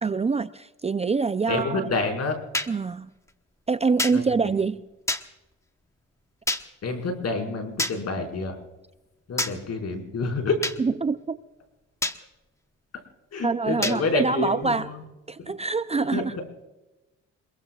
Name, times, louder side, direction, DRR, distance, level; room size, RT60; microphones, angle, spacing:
voice 1, 0.0-1.9 2.7-3.1 3.7-4.9 10.8-11.4 13.4-14.9 15.3-16.4, right 4 dB, 20° right, 12 dB, 0.5 m, -25 dB
voice 2, 1.5-2.4 4.1-4.5 6.8-8.6 9.3-10.6 13.3-15.0 15.9-16.2, left 3 dB, 55° left, 3 dB, 5.3 m, -28 dB
sound 1, 2.5-2.7 4.0-4.2 5.1-5.2 6.5-6.6 7.8-8.0 9.4-9.5 10.6-10.8 12.0-12.2 13.8-14.0, left 1 dB, 10° left, 1.1 m, -26 dB
27.0 x 22.0 x 2.4 m, 1.0 s
cardioid pair, 90°, 30 cm